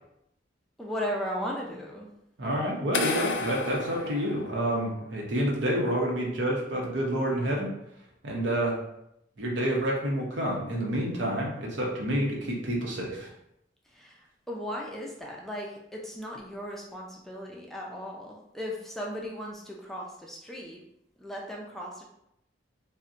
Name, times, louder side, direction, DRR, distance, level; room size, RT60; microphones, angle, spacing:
voice 1, 0.8-2.1 13.9-14.2 14.5-20.8 21.2-22.0, equal, ahead, -3 dB, 0.4 m, -36 dB
voice 2, 2.4-7.7 8.2-8.8 9.4-13.3, right 1 dB, 80° right, -2 dB, 0.8 m, -28 dB
sound 1, 2.9-5.0, left 4 dB, 70° left, 0.4 m, -32 dB
4.0 x 2.1 x 2.5 m, 0.79 s
head